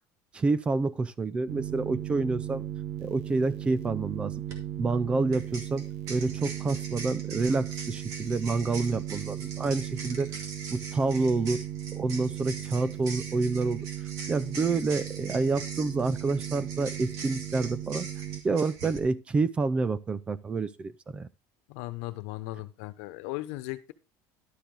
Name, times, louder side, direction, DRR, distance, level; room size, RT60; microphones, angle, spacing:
voice 1, 0.3-2.6 3.0-4.3 4.8-10.3 10.7-11.7 11.9-13.8 14.3-18.1 18.4-21.3, right 3 dB, 15° right, 0.5 m, -28 dB
sound 1, 1.5-18.4, right 13 dB, 75° right, 1.1 m, -37 dB
sound 2, 4.3-4.6 5.3-19.0, right 4 dB, 45° right, 2.4 m, -43 dB
voice 2, 21.7-23.9, left 18 dB, 75° left, 1.1 m, -37 dB
11.5 x 6.9 x 3.9 m
cardioid pair, 175°, 7 cm